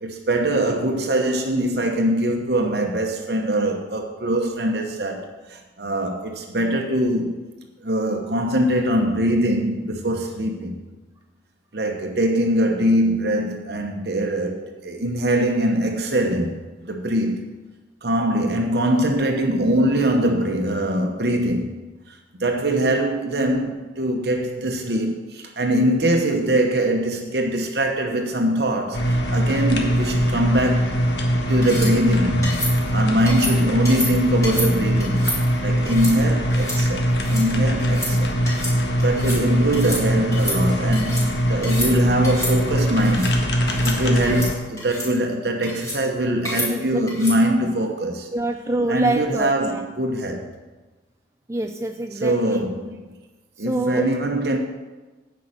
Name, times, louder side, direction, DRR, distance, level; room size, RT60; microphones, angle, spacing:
voice 1, 0.0-7.4 7.8-10.8 11.7-17.4 18.0-21.8 22.1-31.0 31.5-35.3 35.6-38.4 39.0-43.4 43.8-48.3 48.9-50.5 52.1-53.0 53.6-54.6, right 1 dB, 60° right, 1.0 m, -22 dB
sound 1, 28.9-44.5, equal, 75° left, 1.4 m, -21 dB
sound 2, 31.6-31.9 32.4-32.7 33.3-33.5 33.8-34.1 34.4-34.7 35.0-35.4 35.8-36.1 36.5-36.8 37.1-37.4 37.8-38.1 38.4-38.7 39.0-39.4 39.7-40.0 40.3-41.2 41.6-41.9 42.2-42.5 43.0-43.3 43.7-43.9 44.2-44.5 44.8-45.1 45.6-46.0 46.4-46.7 47.1-47.4, left 1 dB, 15° left, 3.3 m, -29 dB
voice 2, 46.7-47.4 48.3-49.9 51.5-52.6 53.7-54.1, right 2 dB, 15° right, 0.3 m, -26 dB
9.7 x 5.6 x 8.1 m
head